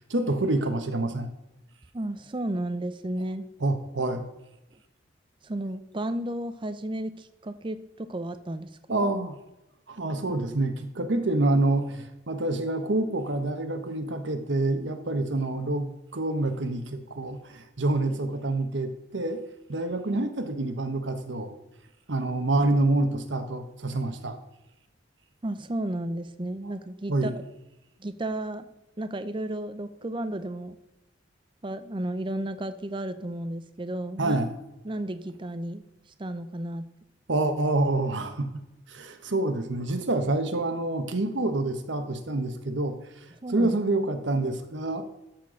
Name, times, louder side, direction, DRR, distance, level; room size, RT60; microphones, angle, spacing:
voice 1, 0.1-1.3 3.6-4.2 8.9-9.3 9.9-19.4 19.7-21.5 22.1-24.4 27.1-27.3 34.2-34.5 37.3-38.6 38.9-45.0, right 2 dB, 70° right, 8 dB, 1.1 m, -27 dB
voice 2, 1.9-3.4 5.4-9.1 25.4-27.4 28.0-28.7 29.0-30.8 31.6-34.4 34.8-35.8 36.2-36.9 43.4-43.8, right 1 dB, 25° right, 11 dB, 0.6 m, -33 dB
13.0 x 4.5 x 6.3 m, 0.93 s
head